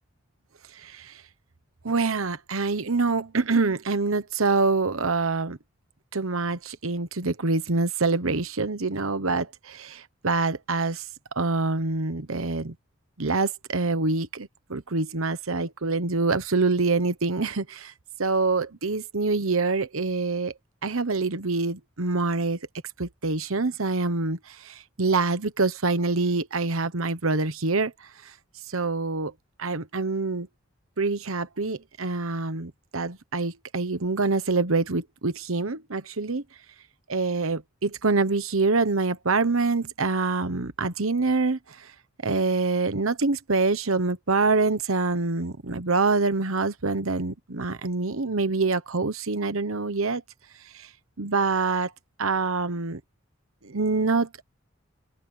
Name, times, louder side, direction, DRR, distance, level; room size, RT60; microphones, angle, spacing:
voice 1, 0.7-1.2 1.8-5.6 6.1-11.1 11.3-12.7 13.2-17.9 18.2-20.5 20.8-22.6 23.0-28.3 28.7-29.3 29.6-30.5 31.0-36.4 37.1-41.9 42.2-50.2 50.7-50.9 51.2-51.9 52.2-53.0 53.6-54.4, right 3 dB, 80° right, 1.2 m, -26 dB
head